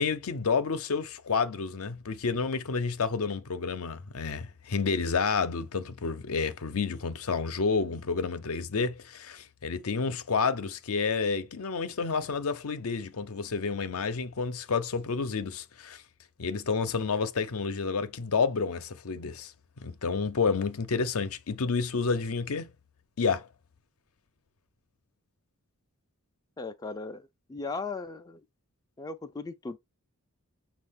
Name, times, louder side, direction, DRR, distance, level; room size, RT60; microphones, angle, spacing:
voice 1, 0.0-16.0 16.4-19.5 19.8-22.7 23.2-23.5, left 5 dB, 70° left, 0.6 m, -30 dB
voice 2, 26.6-28.4 29.0-29.8, left 3 dB, 15° left, 0.3 m, -37 dB
6.2 x 2.4 x 3.5 m
head